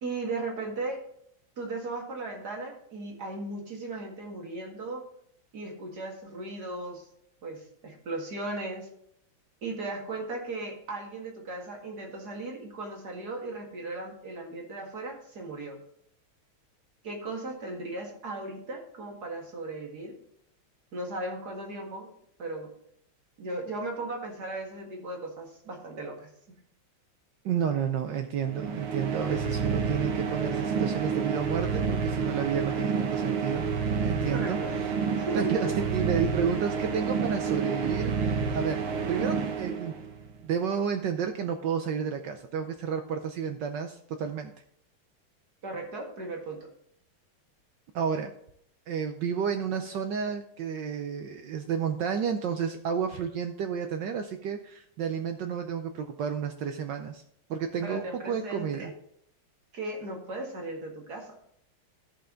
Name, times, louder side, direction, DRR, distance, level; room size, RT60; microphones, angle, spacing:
voice 1, 0.0-1.0 1.6-5.0 5.5-7.1 7.4-8.9 9.6-15.8 17.0-20.1 20.9-22.1 22.4-22.7 23.4-26.3 34.3-34.7 35.1-35.5 45.6-46.6 57.8-58.9 59.7-61.3, right 2 dB, 50° right, 1 dB, 2.3 m, -37 dB
voice 2, 27.4-33.7 34.0-34.9 35.3-38.8 39.1-39.9 40.4-44.5 47.9-48.3 48.9-57.2 57.5-58.9, right 7 dB, 70° right, 6 dB, 1.2 m, -31 dB
sound 1, 28.5-40.3, right 5 dB, 85° right, 2.0 m, -29 dB
13.5 x 5.5 x 3.8 m, 0.70 s
omnidirectional pair, 2.3 m